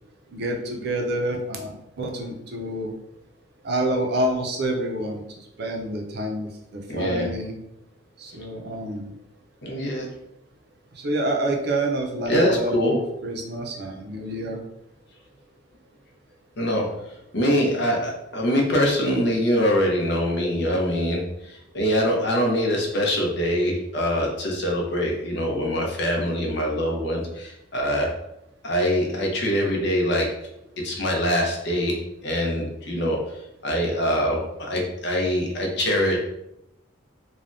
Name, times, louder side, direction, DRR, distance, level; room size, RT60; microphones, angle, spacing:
voice 1, 0.3-2.9 3.6-7.5 8.2-9.1 10.9-12.8 13.2-14.6, right 1 dB, 55° right, 1 dB, 0.5 m, -28 dB
voice 2, 6.9-7.3 9.6-10.1 12.3-13.1 16.6-28.1 28.6-30.4 30.8-33.2 33.6-36.2, equal, 60° left, 0 dB, 0.6 m, -24 dB
3.3 x 2.2 x 2.6 m, 0.84 s
head